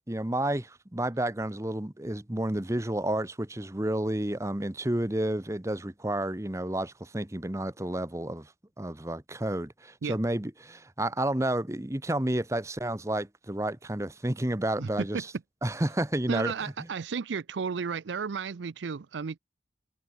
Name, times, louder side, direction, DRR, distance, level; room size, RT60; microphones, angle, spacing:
voice 1, 0.1-8.5 8.8-15.2 15.6-16.5, right 1 dB, 15° right, 1.0 m, -30 dB
voice 2, 14.8-15.2 16.3-19.4, right 5 dB, 85° right, 0.5 m, -33 dB
head